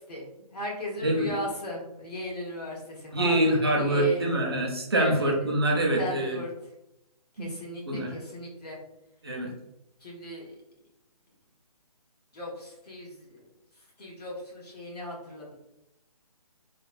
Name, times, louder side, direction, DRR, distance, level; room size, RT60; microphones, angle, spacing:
voice 1, 0.0-4.3 4.9-5.3 6.0-6.5 7.3-8.8 10.0-10.6 12.3-13.5 13.7-15.6, left 1 dB, 80° left, -2 dB, 1.2 m, -37 dB
voice 2, 3.1-6.4 7.4-7.5 7.9-8.1 9.2-9.5, right 1 dB, 40° right, 0 dB, 0.5 m, -25 dB
3.1 x 2.1 x 2.3 m, 0.86 s
hypercardioid pair, 175°, 20 cm